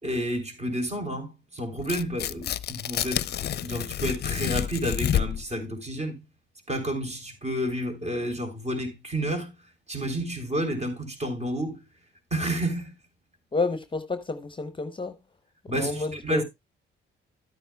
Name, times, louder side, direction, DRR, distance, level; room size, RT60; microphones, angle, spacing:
voice 1, 0.0-3.3 3.6-6.1 6.7-9.5 9.9-11.8 12.3-12.9 15.7-16.4, equal, 35° right, 3.5 m, -30 dB
Tearing, 1.8-5.5, left 10 dB, 55° left, 0.5 m, -29 dB
voice 2, 13.5-15.1 15.7-16.4, left 3 dB, 25° left, 0.8 m, -30 dB
12.5 x 9.0 x 2.3 m
cardioid pair, 90°, 20 cm